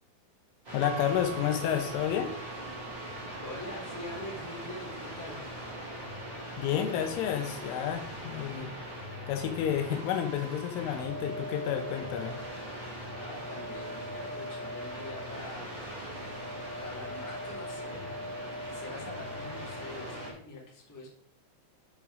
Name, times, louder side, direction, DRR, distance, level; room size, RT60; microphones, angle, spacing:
sound 1, 0.6-20.3, equal, 20° right, 3.4 m, -40 dB
voice 1, 0.7-2.4 6.6-8.7 9.3-12.4, left 9 dB, 80° left, 6 dB, 3.2 m, -30 dB
sound 2, 0.8-9.1, right 19 dB, 75° right, 2.9 m, -49 dB
voice 2, 3.4-5.4 13.1-21.1, left 1 dB, 5° left, -3 dB, 1.8 m, -45 dB
8.5 x 7.6 x 4.9 m, 0.70 s
omnidirectional pair, 5.9 m